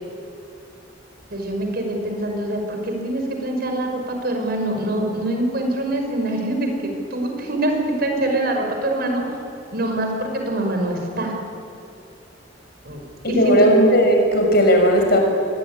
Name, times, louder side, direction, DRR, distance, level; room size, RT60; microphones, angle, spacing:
voice 1, 1.3-9.4 9.7-11.4 12.9-13.0 13.3-13.7, right 1 dB, 60° right, 3 dB, 5.7 m, -24 dB
voice 2, 13.2-15.2, equal, 60° left, 3 dB, 6.3 m, -16 dB
26.5 x 22.5 x 10.0 m, 2.6 s
head